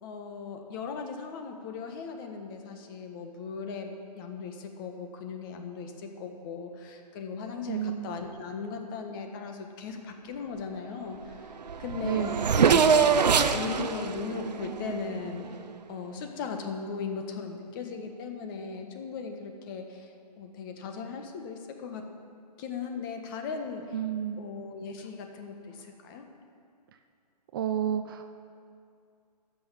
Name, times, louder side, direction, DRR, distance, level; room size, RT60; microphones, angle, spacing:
voice 1, 0.0-11.2 11.8-12.4 12.8-12.9 13.5-15.4 15.9-20.1 20.4-22.0 22.6-23.9 24.4-26.3, left 5 dB, 30° left, 4 dB, 1.4 m, -38 dB
voice 2, 7.7-8.2 12.0-12.9 23.9-24.4 27.5-28.3, right 10 dB, 30° right, 8 dB, 0.5 m, -31 dB
Race car auto racing / Accelerating revving vroom, 11.3-11.4 11.6-15.6, right 6 dB, 75° right, 0.8 m, -24 dB
13.5 x 6.3 x 8.6 m, 2.4 s
hypercardioid pair, 145°, 21 cm